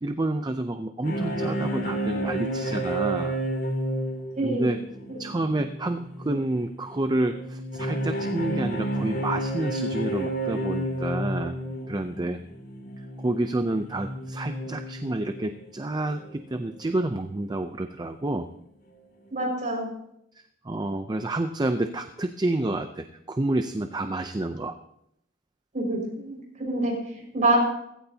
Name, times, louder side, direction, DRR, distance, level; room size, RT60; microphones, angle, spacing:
voice 1, 0.0-3.4 4.4-4.8 5.2-11.6 11.9-12.4 13.0-18.5 20.6-24.8, right 2 dB, 20° right, 8 dB, 0.5 m, -29 dB
sound 1, 1.0-15.6 16.1-16.4 16.8-16.9 17.3-17.4, right 1 dB, 55° left, 3.1 m, -31 dB
voice 2, 4.4-4.7 5.1-5.2 19.3-19.9 25.7-27.6, right 2 dB, 40° right, 0 dB, 5.3 m, -26 dB
16.0 x 15.5 x 2.8 m, 0.75 s
head